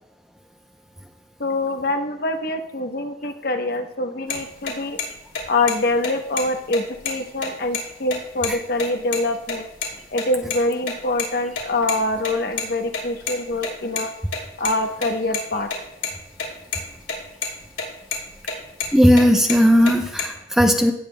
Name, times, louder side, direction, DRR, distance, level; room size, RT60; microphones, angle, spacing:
voice 1, 1.4-5.0 5.5-9.7 10.1-14.1 14.6-15.7, left 2 dB, 50° left, 6 dB, 0.8 m, -24 dB
sound 1, 4.3-4.4 4.7-4.8 5.0-5.1 5.3-5.7 6.0-6.1 6.4-6.5 6.7-7.8 8.1-8.2 8.4-8.5 8.8-9.2 9.5-9.9 10.2-11.2 11.5-14.0 14.3-16.1 16.4-16.5 16.7-17.1 17.4-17.8 18.1-19.2 19.5-20.2, left 6 dB, 75° left, 3.0 m, -27 dB
voice 2, 18.9-20.9, equal, ahead, 3 dB, 0.6 m, -16 dB
17.0 x 7.2 x 2.2 m, 0.83 s
head